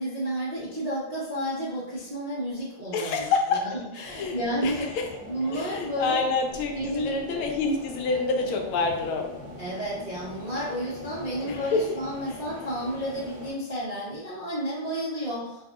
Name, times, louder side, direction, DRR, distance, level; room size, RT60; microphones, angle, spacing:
voice 1, 0.0-3.7 4.0-4.9 5.3-6.2 6.7-7.4 9.6-15.7, equal, 50° right, -10 dB, 0.4 m, -31 dB
voice 2, 2.9-3.7 3.9-5.0 5.5-9.3 11.4-11.8 12.3-12.4, left 4 dB, 90° left, 3 dB, 1.4 m, -27 dB
sound 1, 4.0-13.5, left 2 dB, 40° left, 1.3 m, -42 dB
3.3 x 2.6 x 2.5 m, 0.87 s
omnidirectional pair, 2.2 m